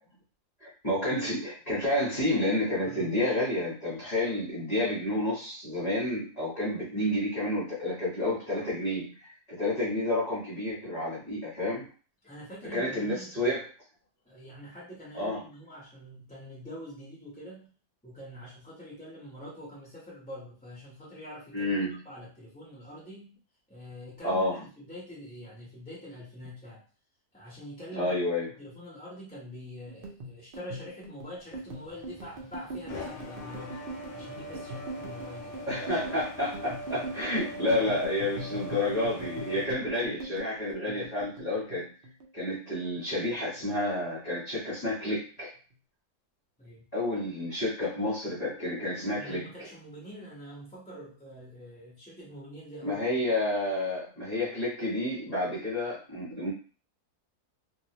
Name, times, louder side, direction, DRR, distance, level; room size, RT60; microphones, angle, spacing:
voice 1, 0.6-11.9 12.7-13.6 15.1-15.4 21.5-22.0 24.2-24.5 28.0-28.5 35.7-41.8 42.3-45.5 46.9-49.5 52.8-56.5, left 1 dB, 25° left, -7 dB, 1.4 m, -30 dB
voice 2, 12.2-13.5 14.2-17.7 18.0-21.7 22.0-23.3 23.7-26.8 27.3-28.1 28.6-33.8 34.1-35.6 36.9-37.1 39.2-39.3 40.9-41.1 46.6-46.9 49.1-53.0, equal, 5° left, -7 dB, 0.9 m, -45 dB
sound 1, 29.9-42.5 42.7-43.8 44.0-44.4 44.7-45.4, right 2 dB, 60° right, 0.5 m, -42 dB
sound 2, 31.4-39.7, left 1 dB, 70° left, 0.5 m, -42 dB
2.8 x 2.7 x 2.9 m, 0.38 s
omnidirectional pair, 1.7 m